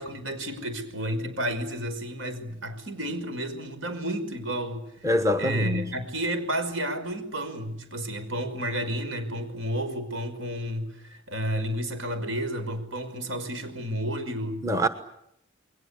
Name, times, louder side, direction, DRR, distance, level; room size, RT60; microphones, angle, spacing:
voice 1, 0.0-4.9 5.4-14.6, right 1 dB, 75° right, 5.6 m, -31 dB
voice 2, 5.0-5.9 14.6-14.9, equal, 15° right, 1.2 m, -24 dB
29.5 x 22.0 x 8.4 m
head